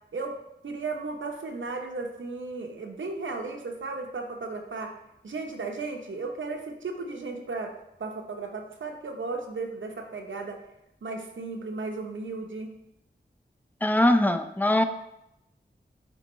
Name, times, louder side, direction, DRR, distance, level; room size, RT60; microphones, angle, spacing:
voice 1, 0.6-5.0 5.2-7.7 8.0-10.6 11.0-12.7, right 3 dB, 85° right, 3 dB, 0.7 m, -35 dB
voice 2, 13.8-14.8, left 1 dB, 10° left, 8 dB, 0.5 m, -21 dB
9.8 x 3.5 x 3.0 m, 0.84 s
cardioid pair, 40°, 19 cm